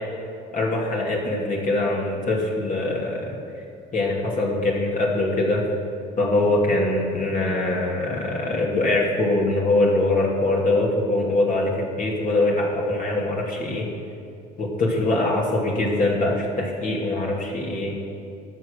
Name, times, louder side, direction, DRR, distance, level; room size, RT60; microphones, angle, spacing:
voice 1, 0.5-3.3 3.9-5.6 6.2-13.9 14.6-18.0, left 2 dB, 40° left, -3 dB, 2.4 m, -23 dB
12.0 x 6.5 x 6.4 m, 2.5 s
hypercardioid pair, 65°, 20 cm